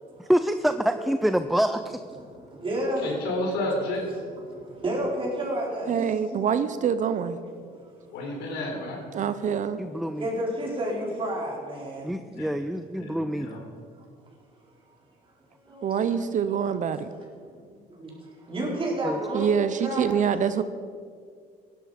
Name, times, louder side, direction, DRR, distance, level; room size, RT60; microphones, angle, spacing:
voice 1, 0.2-2.0 9.8-10.3 12.0-13.5 19.0-19.2, equal, ahead, 10 dB, 0.4 m, -26 dB
voice 2, 2.2-3.2 4.4-6.4 7.4-7.9 10.2-12.1 13.9-14.0 15.6-16.0 17.5-20.2, right 1 dB, 30° right, -3 dB, 4.6 m, -31 dB
voice 3, 3.0-4.0 8.1-9.0 12.4-12.5 12.9-13.6, left 1 dB, 90° left, 0 dB, 4.0 m, -31 dB
voice 4, 5.9-7.4 9.1-9.8 15.8-17.1 19.3-20.6, right 7 dB, 50° right, 12 dB, 0.7 m, -25 dB
16.5 x 11.5 x 5.2 m, 2.1 s
cardioid pair, 110°, 17 cm